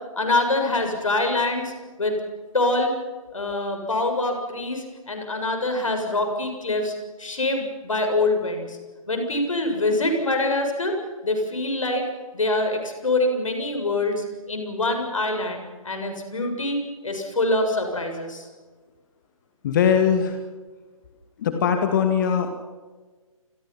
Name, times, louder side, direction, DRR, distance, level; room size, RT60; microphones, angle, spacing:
voice 1, 0.2-1.7 2.0-2.1 2.5-2.9 3.3-6.9 7.2-8.8 9.1-10.9 11.2-12.0 12.3-16.8 17.0-18.4, left 2 dB, 65° left, 4 dB, 7.3 m, -24 dB
voice 2, 19.6-20.4 21.4-22.5, left 7 dB, 35° left, 6 dB, 2.3 m, -21 dB
28.0 x 23.0 x 5.8 m, 1.4 s
figure-of-eight pair, 135°, 18 cm